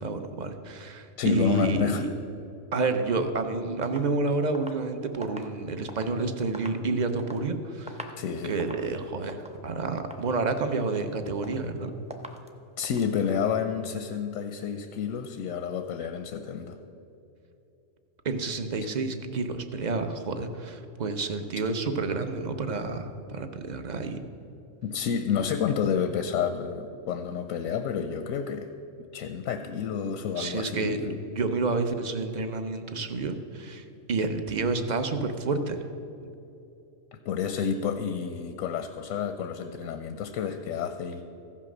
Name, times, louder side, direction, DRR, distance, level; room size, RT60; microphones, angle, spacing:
voice 1, 0.0-2.1 2.7-8.0 8.4-11.9 18.2-24.2 30.4-35.8 36.2-36.3, right 3 dB, 45° right, 8 dB, 0.7 m, -29 dB
voice 2, 1.2-2.1 8.2-8.5 12.8-16.8 24.8-28.7 29.1-31.2 37.2-41.2, left 7 dB, 85° left, 7 dB, 1.0 m, -29 dB
sound 1, 3.8-6.2 6.5-7.5 7.8-8.2 8.5-8.9 9.3-9.6 10.0-10.3 10.7-11.1 11.4-11.8 12.1-12.5 12.8-13.2, equal, 10° right, 0.3 m, -44 dB
15.0 x 5.9 x 6.1 m, 2.8 s
omnidirectional pair, 1.3 m